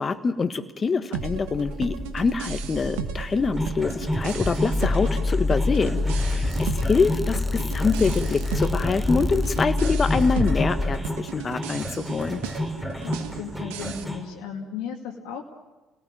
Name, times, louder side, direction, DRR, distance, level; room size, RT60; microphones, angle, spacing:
voice 1, 0.0-12.4, left 4 dB, 35° left, 10 dB, 1.7 m, -25 dB
sound 1, 1.1-14.0, right 8 dB, 75° right, 1.5 m, -36 dB
sound 2, 1.2-11.0, left 2 dB, 10° left, 1.3 m, -27 dB
sound 3, 3.6-14.2, left 1 dB, 10° right, 5.7 m, -31 dB
voice 2, 12.9-15.4, left 6 dB, 70° left, 2 dB, 2.1 m, -36 dB
29.5 x 18.0 x 7.5 m, 1.1 s
hypercardioid pair, 55°, 0 cm